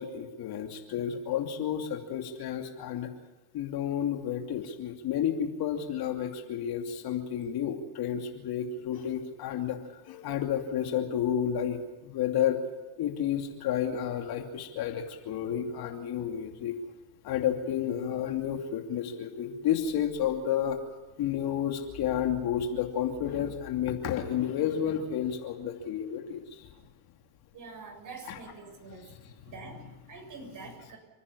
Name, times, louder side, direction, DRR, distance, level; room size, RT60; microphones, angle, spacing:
voice 1, 0.0-3.1 3.5-12.6 13.0-16.8 17.2-20.8 21.2-26.7 28.3-28.4, left 9 dB, 50° left, 4 dB, 2.8 m, -31 dB
voice 2, 27.5-29.1 29.4-31.0, right 4 dB, 40° right, 3 dB, 7.8 m, -45 dB
29.5 x 10.0 x 9.9 m, 1.2 s
hypercardioid pair, 90°, 48 cm